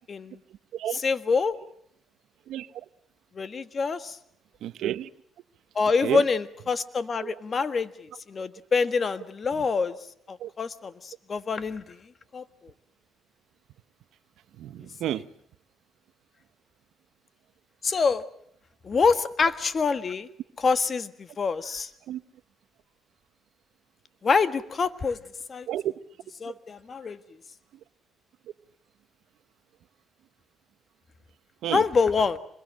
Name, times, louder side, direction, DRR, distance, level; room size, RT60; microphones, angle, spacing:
voice 1, 1.0-1.6 3.3-4.2 5.7-7.9 8.3-9.9 10.3-12.0 12.3-12.4 17.8-18.2 18.8-20.3 20.6-21.9 24.2-25.2 25.5-25.7 26.4-27.2 31.7-32.4, left 5 dB, 40° left, 1.5 m, -26 dB
voice 2, 2.5-2.8 4.6-5.1 6.0-6.2 7.2-7.3 9.5-9.7 10.4-10.5 14.6-15.3 22.1-22.2 25.7-25.9 26.4-26.6 31.6-31.8, right 12 dB, 80° right, 0.9 m, -31 dB
25.5 x 22.0 x 7.6 m
cardioid pair, 90°, 0 cm